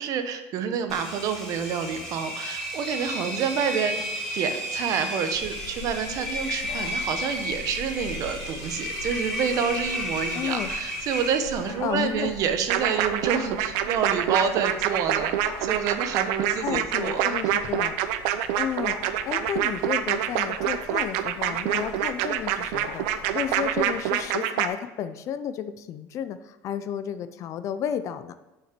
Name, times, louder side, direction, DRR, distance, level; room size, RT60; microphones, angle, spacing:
voice 1, 0.0-4.0 4.3-17.4, right 7 dB, 50° right, 8 dB, 1.0 m, -28 dB
Engine, 0.9-11.7, equal, ahead, 3.5 m, -33 dB
sound 1, 5.3-24.3, left 4 dB, 75° left, 1.3 m, -43 dB
voice 2, 10.3-10.7 11.8-12.3 16.6-17.9 18.6-19.0 19.3-28.3, left 9 dB, 45° left, 12 dB, 0.5 m, -32 dB
sound 2, 12.7-24.7, right 11 dB, 75° right, 0.7 m, -26 dB
7.2 x 5.8 x 6.8 m, 1.1 s
cardioid pair, 140°, 8 cm